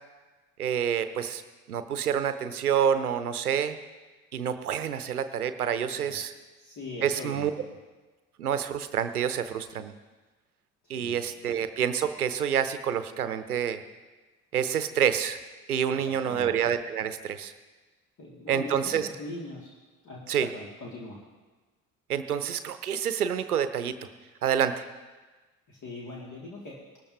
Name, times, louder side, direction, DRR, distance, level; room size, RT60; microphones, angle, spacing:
voice 1, 0.6-1.4 1.7-3.8 4.3-6.3 7.0-7.5 8.4-9.9 10.9-13.8 14.5-15.4 15.7-17.5 18.5-19.1 20.3-20.5 22.1-23.9 24.4-24.9, right 8 dB, 80° right, 11 dB, 0.7 m, -28 dB
voice 2, 6.6-7.5 10.8-11.6 15.9-16.6 18.2-19.8 20.0-21.2 25.7-26.7, left 2 dB, 40° left, -4 dB, 2.6 m, -41 dB
19.0 x 13.5 x 2.9 m, 1.2 s
figure-of-eight pair, 55°, 44 cm